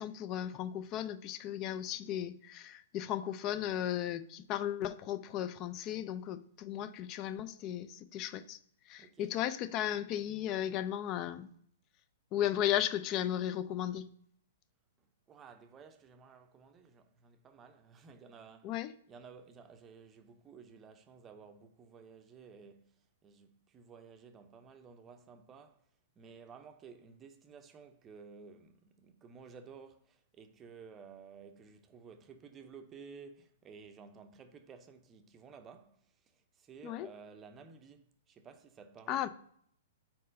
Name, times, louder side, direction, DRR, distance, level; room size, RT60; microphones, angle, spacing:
voice 1, 0.0-8.6 8.9-11.5 12.3-14.1 18.6-18.9 36.8-37.1 39.1-39.3, left 11 dB, 35° left, 0.4 m, -35 dB
voice 2, 9.0-9.4 15.0-25.8 26.2-39.3, right 5 dB, 20° right, 0.6 m, -54 dB
4.4 x 4.2 x 5.2 m
hypercardioid pair, 130°, 0 cm